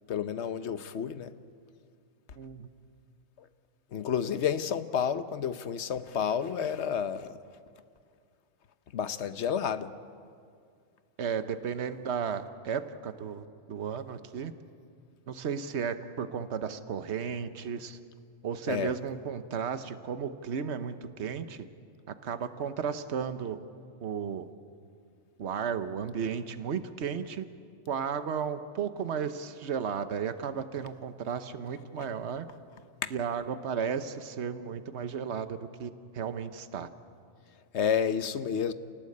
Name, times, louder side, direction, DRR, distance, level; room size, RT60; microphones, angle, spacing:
voice 1, 0.1-1.3 3.9-7.4 8.9-9.9 18.7-19.0 37.7-38.7, left 8 dB, 70° left, 12 dB, 1.1 m, -30 dB
voice 2, 2.4-2.7 11.2-13.4 13.7-14.5 15.3-18.0 18.4-21.7 22.2-23.6 24.0-24.5 25.4-27.4 27.9-32.5 33.1-36.9, right 7 dB, 65° right, 11 dB, 1.3 m, -34 dB
27.5 x 18.5 x 8.5 m, 2.3 s
omnidirectional pair, 1.2 m